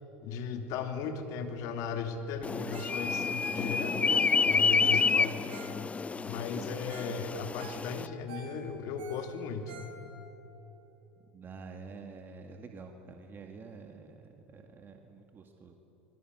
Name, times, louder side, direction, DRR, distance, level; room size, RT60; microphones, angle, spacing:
voice 1, 0.2-3.3 3.5-5.4 6.2-9.8, left 5 dB, 55° left, 6 dB, 2.7 m, -37 dB
sound 1, 2.4-8.1, left 5 dB, 20° left, 0.6 m, -29 dB
Ringtone, 2.7-3.0 3.3-6.1 6.6-6.7 6.9-7.2 7.4-10.3 10.8-10.9, right 5 dB, 65° right, 6.8 m, -49 dB
voice 2, 11.3-15.8, right 4 dB, 30° right, 4 dB, 2.1 m, -48 dB
28.0 x 21.0 x 8.2 m, 3.0 s
hypercardioid pair, 85°, 7 cm